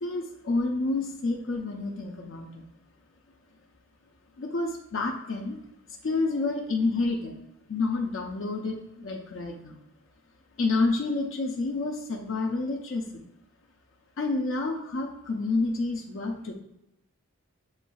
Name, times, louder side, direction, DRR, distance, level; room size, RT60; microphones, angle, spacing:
voice 1, 0.0-2.6 4.4-5.6 6.0-7.3 7.7-9.8 10.6-13.3 14.2-16.5, left 3 dB, 60° left, 1 dB, 0.5 m, -29 dB
7.8 x 3.0 x 2.3 m, 0.87 s
head